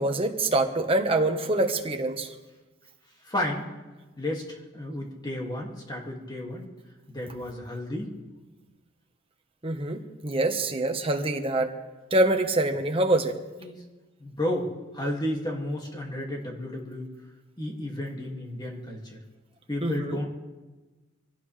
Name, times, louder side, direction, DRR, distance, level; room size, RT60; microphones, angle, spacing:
voice 1, 0.0-2.3 9.6-11.7 12.1-13.3 19.8-20.2, right 2 dB, 25° right, 4 dB, 1.3 m, -25 dB
voice 2, 3.2-3.7 4.2-6.7 7.1-8.1 13.6-13.8 14.2-17.1 17.6-19.2 19.7-20.3, left 1 dB, 20° left, -1 dB, 2.3 m, -32 dB
24.5 x 17.0 x 3.4 m, 1.2 s
head